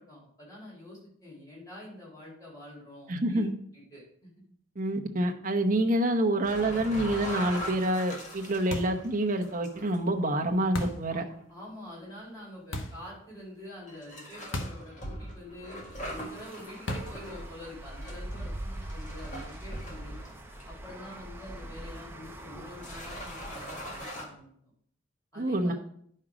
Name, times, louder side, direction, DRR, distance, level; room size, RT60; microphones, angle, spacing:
voice 1, 0.0-4.3 11.1-11.2 11.5-20.2 20.7-24.5 25.3-25.7, left 1 dB, 20° left, -5 dB, 4.5 m, -46 dB
voice 2, 3.1-3.5 4.8-11.2 25.4-25.7, right 1 dB, 40° right, 2 dB, 1.0 m, -27 dB
sound 1, 6.4-10.0 10.4-10.6 11.3-11.4 12.3-12.4 13.9-21.1 21.6-21.7 22.5-22.6 22.8-24.2, equal, 40° left, 1.9 m, -42 dB
sound 2, 8.7-9.1 10.7-11.1 12.7-13.1 14.5-14.9 15.2-15.3 16.9-17.3, left 1 dB, 70° left, 1.0 m, -35 dB
sound 3, 16.0-24.1, right 1 dB, 10° right, 0.7 m, -42 dB
10.0 x 5.6 x 5.0 m, 0.65 s
head